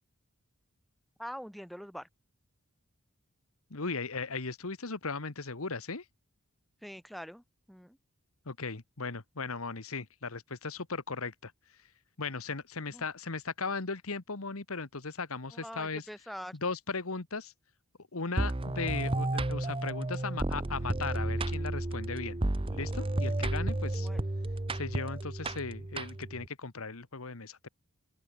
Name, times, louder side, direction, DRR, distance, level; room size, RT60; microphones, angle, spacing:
voice 1, 1.2-2.1 6.8-7.4 7.7-8.0 12.9-13.0 15.5-16.5 24.0-24.3, equal, ahead, 4.0 m, -43 dB
voice 2, 3.7-6.0 8.4-11.5 12.2-16.1 16.5-17.5 18.1-22.4 22.7-24.1 24.7-27.7, left 4 dB, 75° left, 1.5 m, -37 dB
sound 1, 18.4-26.5, right 1 dB, 25° right, 0.8 m, -32 dB
open air
head